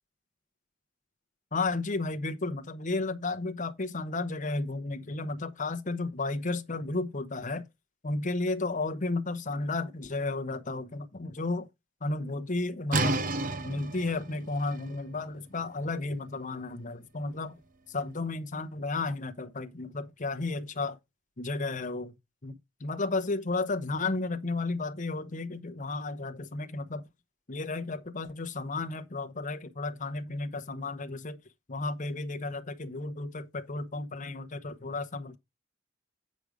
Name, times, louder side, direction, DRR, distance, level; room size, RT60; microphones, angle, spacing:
voice 1, 1.5-7.7 8.0-11.7 12.0-13.2 13.6-17.6 17.9-21.0 21.4-22.1 22.4-27.1 27.5-31.4 31.7-35.4, left 3 dB, 40° left, 0.9 m, -33 dB
sound 1, 12.9-18.5, right 2 dB, 45° right, 0.7 m, -34 dB
8.8 x 5.2 x 4.8 m
head